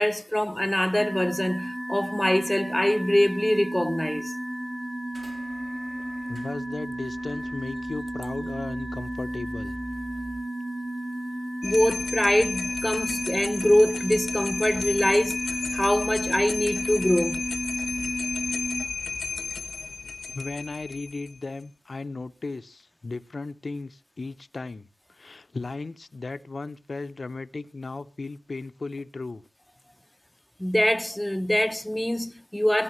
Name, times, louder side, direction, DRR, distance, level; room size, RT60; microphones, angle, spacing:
voice 1, 0.0-4.3 11.6-15.4 15.7-17.4 30.6-32.8, left 1 dB, 10° left, 0.7 m, -24 dB
sound 1, 1.0-18.9, right 1 dB, 5° right, 1.1 m, -33 dB
sound 2, 5.1-10.4, right 1 dB, 55° right, 2.3 m, -45 dB
voice 2, 6.3-9.7 20.0-29.4, left 3 dB, 55° left, 0.8 m, -36 dB
sound 3, 11.6-21.4, left 5 dB, 85° left, 1.2 m, -33 dB
17.0 x 15.5 x 3.1 m
cardioid pair, 40°, 0 cm